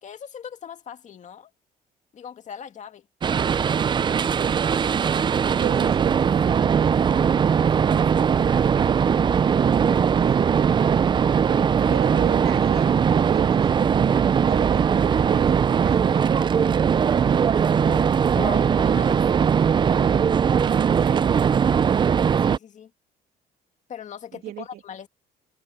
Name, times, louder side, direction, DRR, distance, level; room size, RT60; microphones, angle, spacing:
voice 1, 0.0-1.5 2.1-3.1 5.5-5.7 7.7-8.4 11.8-12.0 17.7-19.2 22.4-22.9 23.9-25.1, left 8 dB, 45° left, 2.1 m, -40 dB
sound 1, 3.2-22.6, right 7 dB, 30° right, 0.4 m, -20 dB
voice 2, 4.4-4.7 5.5-7.0 10.2-10.5 11.9-16.7 20.7-21.5 24.4-24.8, right 13 dB, 70° right, 2.4 m, -35 dB
cardioid pair, 110°, 17 cm